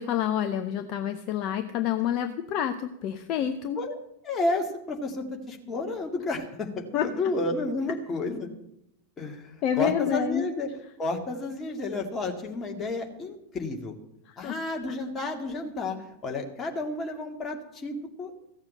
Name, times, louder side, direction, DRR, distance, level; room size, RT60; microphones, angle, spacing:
voice 1, 0.0-3.8 6.9-7.1 9.6-10.4 14.3-14.5 14.9-15.0, left 10 dB, 40° left, 8 dB, 0.8 m, -28 dB
voice 2, 4.2-8.5 9.2-10.7 11.0-14.0 14.4-16.0 16.2-18.4, left 2 dB, 20° left, 1 dB, 2.3 m, -31 dB
15.0 x 7.3 x 7.6 m, 0.83 s
figure-of-eight pair, 90°, 0 cm